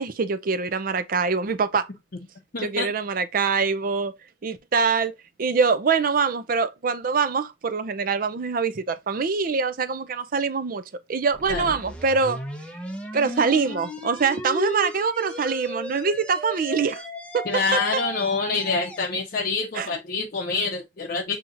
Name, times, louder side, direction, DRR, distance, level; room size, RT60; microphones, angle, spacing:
voice 1, 0.0-1.9 2.6-4.1 4.4-10.8 11.1-12.4 13.1-17.0 17.3-17.5 17.7-17.8 19.7-19.9, right 5 dB, 50° right, 0.5 m, -24 dB
voice 2, 2.5-2.9 11.5-11.7 17.5-21.4, left 4 dB, 50° left, 0.6 m, -26 dB
sound 1, 11.3-19.1, right 1 dB, 5° left, 0.8 m, -35 dB
7.1 x 2.8 x 2.5 m
head